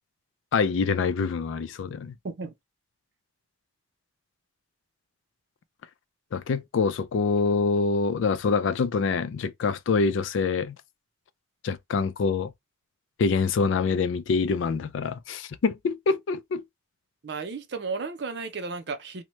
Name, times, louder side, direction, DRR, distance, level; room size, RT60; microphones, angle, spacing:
voice 1, 0.5-2.2 6.3-10.8 11.6-12.5 13.2-16.6, left 4 dB, 80° left, 0.4 m, -25 dB
voice 2, 17.2-19.2, right 4 dB, 60° right, 0.5 m, -33 dB
2.9 x 2.1 x 3.0 m
head